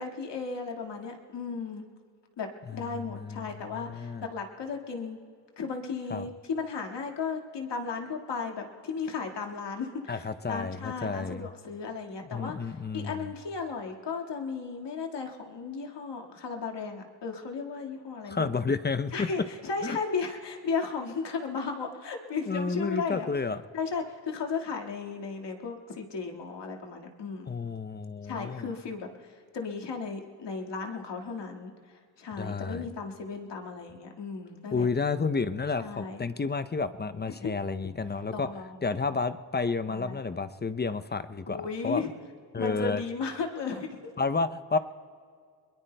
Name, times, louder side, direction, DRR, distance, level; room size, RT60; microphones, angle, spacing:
voice 1, 0.0-1.8 2.4-5.2 5.6-18.6 19.1-23.3 23.7-27.5 28.2-34.9 35.8-36.2 37.4-37.6 38.3-38.8 39.9-40.2 41.5-42.1 42.6-44.0, left 5 dB, 60° left, 2 dB, 1.9 m, -35 dB
voice 2, 2.7-4.3 6.1-6.3 10.1-11.5 12.3-13.3 18.3-19.1 19.8-20.0 22.5-23.6 27.5-28.7 32.4-32.9 34.7-38.5 38.8-42.0 42.5-43.0 44.2-44.8, left 4 dB, 20° left, 11 dB, 0.6 m, -31 dB
23.0 x 21.0 x 2.2 m, 2.1 s
supercardioid pair, 50°, 46 cm